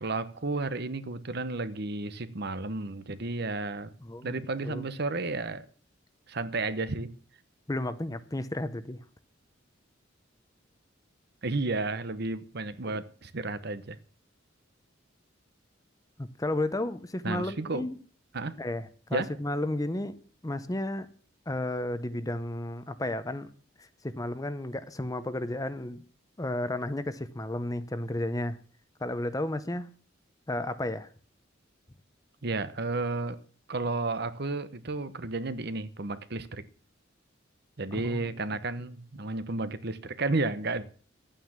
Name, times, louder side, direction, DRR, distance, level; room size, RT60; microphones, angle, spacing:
voice 1, 0.0-3.9 4.2-5.7 6.3-7.1 11.4-14.0 17.2-17.9 18.3-18.6 19.1-19.3 32.4-33.4 33.7-36.6 37.8-40.9, right 3 dB, 55° right, 1.0 m, -32 dB
voice 2, 4.0-4.8 7.7-9.0 16.2-18.0 18.6-20.2 20.4-21.1 21.5-23.5 23.8-26.0 26.4-28.6 29.0-29.9 30.5-31.1 37.9-38.3, left 1 dB, 20° left, 0.7 m, -33 dB
11.5 x 9.1 x 7.4 m
head